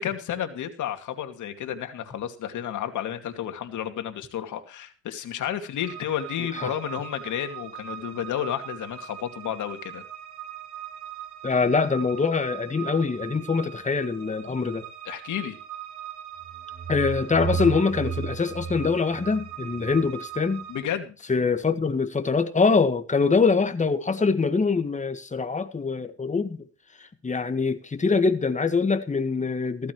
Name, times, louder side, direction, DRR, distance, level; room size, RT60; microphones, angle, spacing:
voice 1, 0.0-10.0 15.1-15.6 20.7-21.1, left 10 dB, 75° left, 2.5 m, -31 dB
sound 1, 5.8-20.8, right 11 dB, 65° right, 6.2 m, -41 dB
voice 2, 11.4-14.9 16.9-20.6 21.3-26.6 27.2-29.9, left 4 dB, 25° left, 1.7 m, -24 dB
sound 2, 16.4-20.1, right 6 dB, 45° right, 5.4 m, -33 dB
15.5 x 14.5 x 3.1 m
cardioid pair, 90°, 30 cm